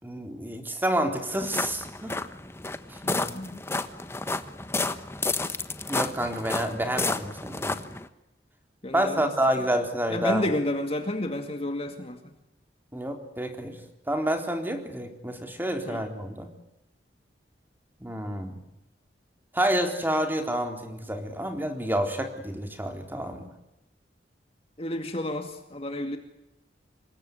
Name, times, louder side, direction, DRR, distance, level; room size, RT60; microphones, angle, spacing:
voice 1, 0.0-2.2 2.9-3.0 5.9-7.8 8.9-10.5 12.9-13.8 14.1-16.5 18.0-18.6 19.5-23.5, right 1 dB, 10° right, 5 dB, 3.9 m, -28 dB
sound 1, 1.3-8.1, left 3 dB, 15° left, 1.2 m, -31 dB
voice 2, 3.0-3.6 8.8-9.3 10.1-12.3 15.9-16.0 24.8-26.2, left 1 dB, 30° left, 6 dB, 2.3 m, -31 dB
27.0 x 22.0 x 9.5 m, 0.92 s
head